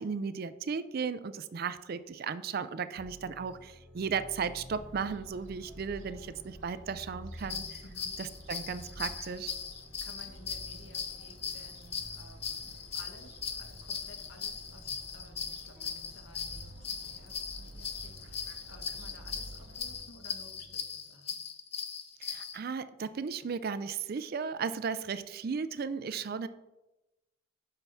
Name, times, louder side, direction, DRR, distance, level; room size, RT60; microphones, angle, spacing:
voice 1, 0.0-7.8 8.2-9.6 22.2-26.5, right 6 dB, 50° right, 13 dB, 0.4 m, -35 dB
sound 1, 3.0-20.8, equal, 5° right, 1.1 m, -52 dB
Fowl, 4.7-19.9, right 1 dB, 80° right, 1.3 m, -52 dB
Sleighbells On Beat Phase Corrected, 7.4-22.6, left 6 dB, 30° left, 0.5 m, -39 dB
voice 2, 7.8-8.2 8.5-8.6 10.0-21.4, left 1 dB, 75° left, 5 dB, 1.2 m, -56 dB
5.7 x 5.4 x 6.1 m, 0.98 s
head